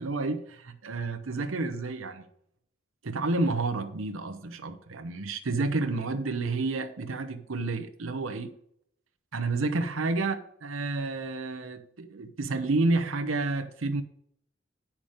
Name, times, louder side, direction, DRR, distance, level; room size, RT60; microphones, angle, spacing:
voice 1, 0.0-2.2 3.0-8.5 9.3-10.3 10.6-14.0, right 3 dB, 75° right, 0.9 m, -30 dB
8.8 x 5.9 x 5.0 m
head